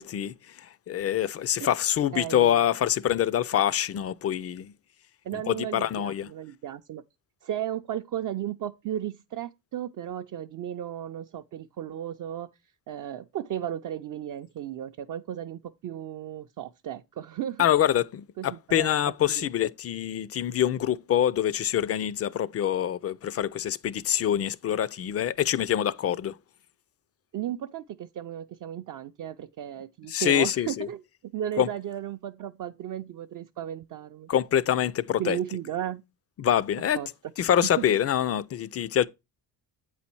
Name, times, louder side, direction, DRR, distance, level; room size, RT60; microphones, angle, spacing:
voice 1, 0.0-4.7 5.5-6.3 17.6-26.4 30.1-30.9 31.6-31.7 34.3-35.4 36.4-37.0 37.4-39.1, left 10 dB, 35° left, 0.4 m, -25 dB
voice 2, 2.1-2.7 5.2-7.0 7.4-12.5 12.9-17.7 18.4-19.5 27.3-34.3 35.2-36.0 36.9-37.1 37.6-37.9, right 11 dB, 50° right, 0.5 m, -35 dB
8.1 x 4.2 x 4.4 m
cardioid pair, 100°, 42 cm